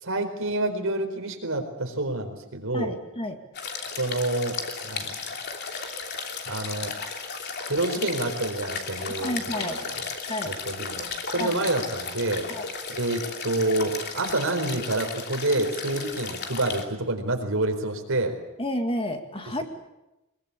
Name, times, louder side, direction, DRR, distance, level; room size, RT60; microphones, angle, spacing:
voice 1, 0.0-3.0 3.9-5.1 6.5-6.9 7.7-10.0 10.5-12.5 12.9-18.4, right 2 dB, 65° right, 4 dB, 4.5 m, -28 dB
voice 2, 2.7-3.4 9.2-9.8 10.3-10.5 11.4-11.5 12.5-12.7 18.6-19.6, left 1 dB, 25° left, 5 dB, 2.2 m, -30 dB
sound 1, 3.5-16.9, left 5 dB, 50° left, 2.9 m, -35 dB
23.0 x 22.5 x 8.5 m, 0.97 s
head